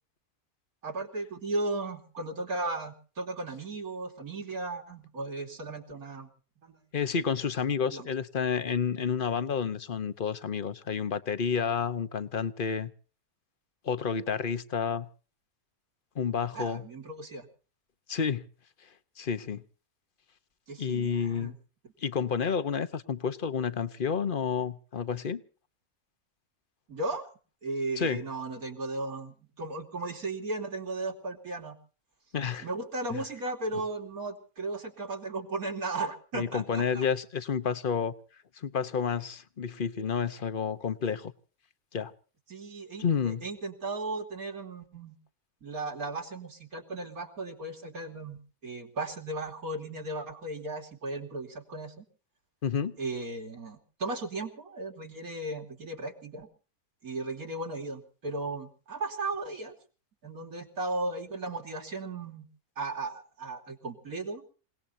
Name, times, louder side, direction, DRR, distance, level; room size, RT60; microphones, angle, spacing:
voice 1, 0.8-6.3 6.6-6.8 7.9-8.1 16.5-17.5 20.7-21.6 26.9-27.3 27.6-31.8 32.6-37.1 42.5-45.2 45.6-52.1 53.0-56.5 57.0-59.8 60.2-62.5 62.8-64.4, right 2 dB, 85° right, 3.4 m, -36 dB
voice 2, 6.9-12.9 13.8-15.1 16.2-16.8 18.1-18.4 19.2-19.6 20.8-21.5 22.0-25.4 28.0-28.2 32.3-32.6 33.1-33.2 36.3-38.1 38.6-41.3 41.9-42.1 43.0-43.4 52.6-53.0, left 6 dB, 40° left, 1.0 m, -30 dB
28.0 x 18.5 x 2.8 m
omnidirectional pair, 1.5 m